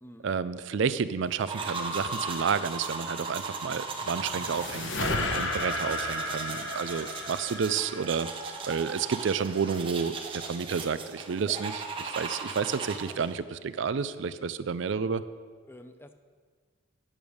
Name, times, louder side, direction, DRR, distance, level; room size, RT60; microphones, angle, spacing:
voice 1, 0.2-15.2, right 6 dB, 70° right, 14 dB, 0.4 m, -30 dB
sound 1, 1.4-13.4, right 4 dB, 25° right, 0.8 m, -37 dB
sound 2, 3.7-9.1, left 2 dB, 70° left, 0.9 m, -34 dB
voice 2, 15.7-16.1, left 1 dB, 10° left, 8 dB, 0.5 m, -49 dB
8.7 x 7.0 x 6.3 m, 1.5 s
head